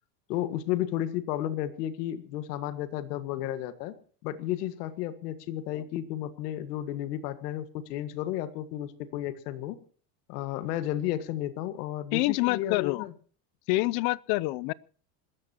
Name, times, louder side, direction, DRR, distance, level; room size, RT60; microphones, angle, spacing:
voice 1, 0.3-3.9 4.2-9.8 10.3-13.1, left 12 dB, 80° left, 1.9 m, -33 dB
voice 2, 12.1-13.1 13.7-14.7, left 20 dB, 55° left, 0.7 m, -27 dB
26.5 x 14.0 x 3.0 m
supercardioid pair, 140°, 47 cm